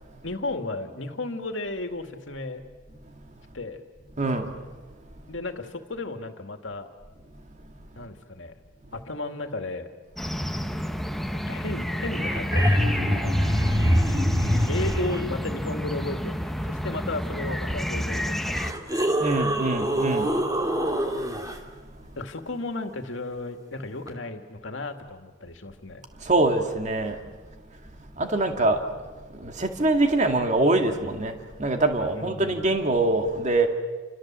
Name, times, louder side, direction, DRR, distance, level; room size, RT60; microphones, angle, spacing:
voice 1, 0.2-2.6 3.5-3.8 5.3-6.9 8.0-8.5 8.9-9.9 11.3-13.3 14.7-19.1 22.2-26.0 32.1-32.7, left 2 dB, 70° left, 6 dB, 2.4 m, -34 dB
sound 1, 10.2-18.7, equal, ahead, 0.9 m, -30 dB
sound 2, 11.8-11.9 12.1-15.2 17.7-17.8 18.4-21.6 24.1-24.2, equal, 20° right, 2.7 m, -24 dB
voice 2, 19.2-20.3 26.3-27.1 28.2-28.8 29.4-31.3 31.6-33.7, right 2 dB, 35° right, 5 dB, 2.2 m, -23 dB
30.0 x 26.0 x 7.6 m, 1.3 s
head